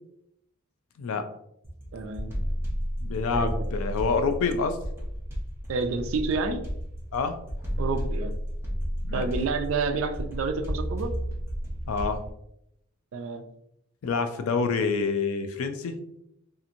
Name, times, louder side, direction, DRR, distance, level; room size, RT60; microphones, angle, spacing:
sound 1, 1.6-12.3, equal, 10° right, 0.5 m, -32 dB
voice 1, 1.9-2.4 3.3-3.7 5.7-6.6 7.8-8.3 9.1-11.2 13.1-13.5, right 4 dB, 65° right, 8 dB, 0.3 m, -29 dB
voice 2, 3.0-4.8 7.1-7.4 9.0-9.3 11.9-12.2 14.0-16.0, left 4 dB, 70° left, 8 dB, 0.3 m, -27 dB
2.8 x 2.5 x 2.5 m, 0.79 s
head